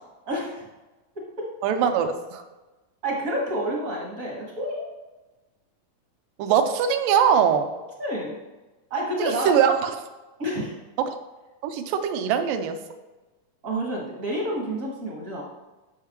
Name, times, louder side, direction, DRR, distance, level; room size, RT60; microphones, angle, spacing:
voice 1, 0.3-0.7 1.1-1.5 3.0-4.9 8.0-8.4 8.9-9.5 10.4-10.7 13.6-15.4, right 1 dB, 60° right, -2 dB, 0.8 m, -29 dB
voice 2, 1.6-2.4 6.4-7.7 9.2-9.9 11.6-12.8, right 8 dB, 90° right, 8 dB, 2.3 m, -22 dB
13.0 x 5.7 x 3.0 m, 1.1 s
omnidirectional pair, 3.8 m